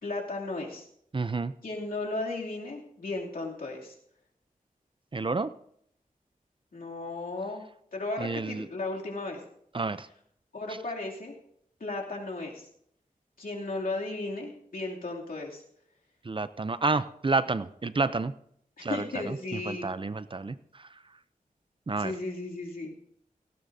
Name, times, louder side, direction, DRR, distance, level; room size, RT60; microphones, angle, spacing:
voice 1, 0.0-0.9 1.6-3.9 6.7-7.6 7.9-9.4 10.5-11.3 11.8-12.7 13.4-15.6 18.8-19.9 22.0-22.9, left 2 dB, 80° left, -2 dB, 2.8 m, -35 dB
voice 2, 1.1-1.5 5.1-5.5 8.2-8.7 9.7-10.1 16.2-18.3 18.8-19.4 19.7-20.9 21.9-22.1, right 3 dB, 35° right, 14 dB, 0.5 m, -30 dB
17.5 x 16.5 x 2.7 m, 0.70 s
wide cardioid pair, 85°, 14 cm